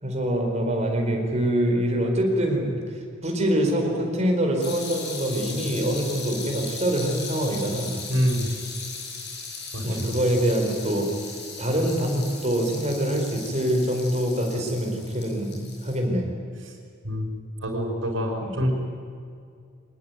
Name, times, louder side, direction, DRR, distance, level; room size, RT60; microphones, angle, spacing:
voice 1, 0.0-2.7 3.2-7.9 9.8-11.1 11.6-16.2 18.4-18.6, right 1 dB, 35° right, 2 dB, 4.6 m, -24 dB
sound 1, 4.6-16.0, left 4 dB, 60° left, 7.3 m, -38 dB
voice 2, 8.1-8.5 9.7-10.1 17.0-17.3 17.6-18.7, equal, 75° right, 0 dB, 5.5 m, -25 dB
24.0 x 20.0 x 9.4 m, 2.3 s
head